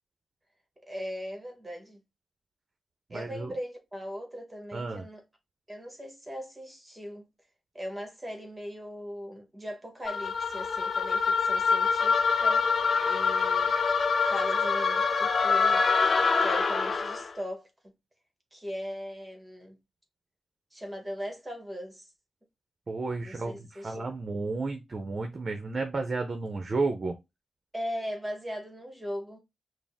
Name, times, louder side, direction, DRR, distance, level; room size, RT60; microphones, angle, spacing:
voice 1, 0.9-2.0 3.1-5.2 5.7-7.2 7.7-12.7 13.0-13.8 14.2-15.8 16.4-17.7 18.5-19.8 20.7-22.1 23.2-24.0 27.7-29.4, equal, 15° right, 1.2 m, -39 dB
voice 2, 3.1-3.5 4.7-5.1 22.9-27.2, right 3 dB, 45° right, 0.6 m, -32 dB
sound 1, 10.0-17.3, left 5 dB, 50° left, 0.4 m, -25 dB
5.0 x 2.0 x 3.5 m
cardioid pair, 65°, 0 cm